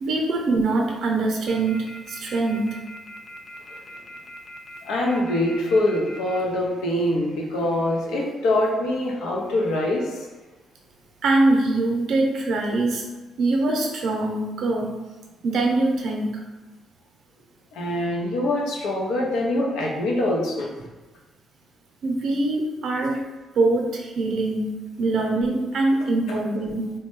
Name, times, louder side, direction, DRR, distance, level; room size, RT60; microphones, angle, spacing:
voice 1, 0.0-2.8 11.2-13.0 13.4-15.0 15.4-16.4 22.0-23.2 23.5-26.9, right 2 dB, 65° right, 0 dB, 0.6 m, -23 dB
sound 1, 1.5-6.4, left 1 dB, 25° left, 0.4 m, -41 dB
voice 2, 4.8-10.2 17.7-20.7, left 1 dB, 90° left, -1 dB, 0.6 m, -24 dB
3.1 x 2.2 x 3.0 m, 1.1 s
cardioid pair, 90°, 0 cm